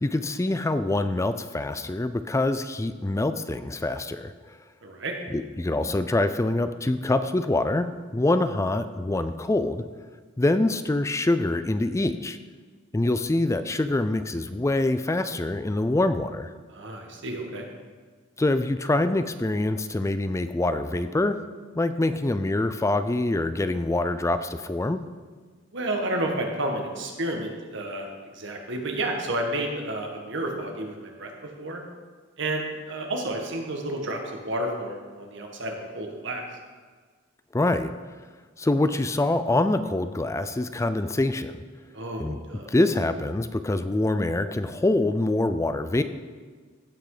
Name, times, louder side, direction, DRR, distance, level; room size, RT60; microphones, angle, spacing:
voice 1, 0.0-4.3 5.3-9.8 10.4-12.4 12.9-16.5 18.4-21.4 21.7-25.0 37.5-37.9 38.6-41.6 42.2-42.4 42.7-46.0, left 2 dB, 15° left, 11 dB, 0.4 m, -25 dB
voice 2, 4.8-5.1 16.7-17.7 25.7-28.1 28.3-31.8 32.4-36.4 41.9-42.7, right 1 dB, 65° right, 2 dB, 1.8 m, -31 dB
15.5 x 6.0 x 5.0 m, 1.5 s
head